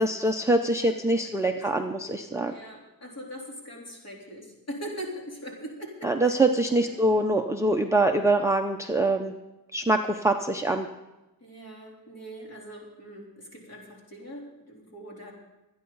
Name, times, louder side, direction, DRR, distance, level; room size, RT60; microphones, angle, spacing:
voice 1, 0.0-2.5 6.0-9.3 9.7-10.9, right 2 dB, 10° right, 5 dB, 0.5 m, -24 dB
voice 2, 1.2-1.7 2.5-6.4 6.7-7.1 11.4-15.3, equal, 40° left, -2 dB, 3.5 m, -42 dB
25.5 x 9.5 x 3.9 m, 1.0 s
wide cardioid pair, 180°, 38 cm